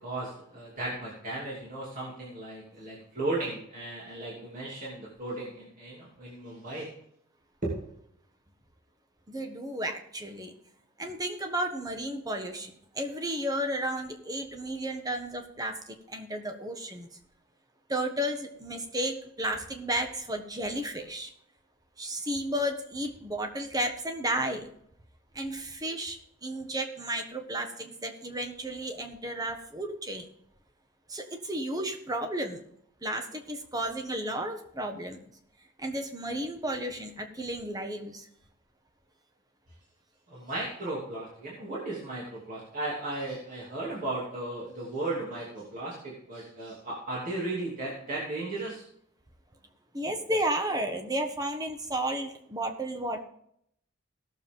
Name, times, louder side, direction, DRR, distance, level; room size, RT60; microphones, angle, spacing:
voice 1, 0.0-6.9 7.6-7.7 40.3-48.8, right 2 dB, 40° right, -6 dB, 3.0 m, -35 dB
voice 2, 9.3-10.5 11.0-17.1 17.9-21.3 22.0-24.7 25.3-30.3 31.1-32.6 33.0-35.2 35.8-38.3 49.9-53.2, right 1 dB, 20° right, 5 dB, 1.3 m, -33 dB
17.5 x 7.1 x 3.8 m, 0.70 s
head